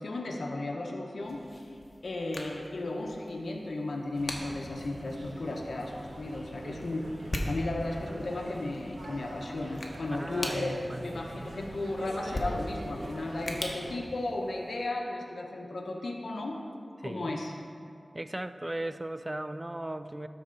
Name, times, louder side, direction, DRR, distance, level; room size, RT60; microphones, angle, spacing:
voice 1, 0.0-7.1 7.4-16.6 17.0-17.5, left 2 dB, 85° left, 1 dB, 0.8 m, -35 dB
sound 1, 1.2-14.9, left 1 dB, 50° left, 1.0 m, -42 dB
sound 2, 4.1-13.9, right 1 dB, 80° right, 1.1 m, -44 dB
voice 2, 10.1-11.5 17.0-17.4 18.1-20.3, right 1 dB, 25° right, 11 dB, 0.4 m, -37 dB
12.5 x 4.2 x 3.8 m, 2.4 s
cardioid pair, 40°, 0 cm